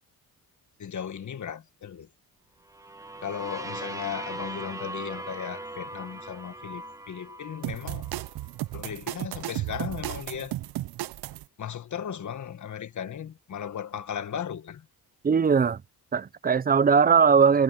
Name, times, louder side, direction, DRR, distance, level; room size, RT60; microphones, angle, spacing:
voice 1, 0.8-2.1 3.2-8.1 8.7-10.6 11.6-14.9, left 8 dB, 50° left, 1.7 m, -36 dB
sound 1, 2.7-8.5, right 2 dB, 10° right, 1.4 m, -39 dB
sound 2, 7.6-11.4, right 15 dB, 85° right, 0.7 m, -34 dB
voice 2, 15.2-15.8 16.1-17.6, right 6 dB, 25° right, 0.5 m, -20 dB
cardioid pair, 130°, 38 cm